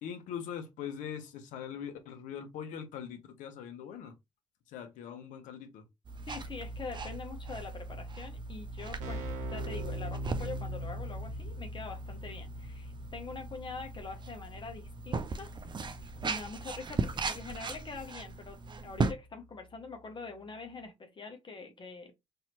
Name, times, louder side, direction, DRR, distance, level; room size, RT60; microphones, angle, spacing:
voice 1, 0.0-4.1 4.7-5.8, left 8 dB, 65° left, 0.9 m, -42 dB
sound 1, 6.0-19.1, right 4 dB, 35° right, 0.6 m, -38 dB
voice 2, 6.3-15.5 16.2-22.1, left 4 dB, 35° left, 1.0 m, -44 dB
Keyboard (musical), 9.0-19.3, equal, 65° right, 0.9 m, -42 dB
4.2 x 2.7 x 2.9 m
figure-of-eight pair, 40°, 14 cm